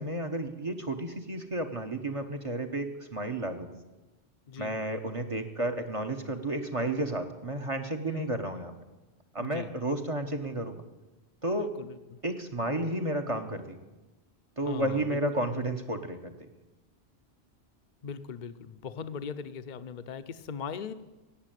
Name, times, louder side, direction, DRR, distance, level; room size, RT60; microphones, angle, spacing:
voice 1, 0.0-3.7 4.6-8.7 9.3-10.8 11.4-11.7 12.2-13.8 14.6-16.3, right 1 dB, 30° right, 7 dB, 1.1 m, -32 dB
voice 2, 8.1-8.4 9.4-9.7 11.6-12.2 14.6-15.5 18.0-20.9, left 6 dB, 50° left, 11 dB, 0.8 m, -39 dB
16.0 x 8.8 x 9.1 m, 1.1 s
omnidirectional pair, 1.1 m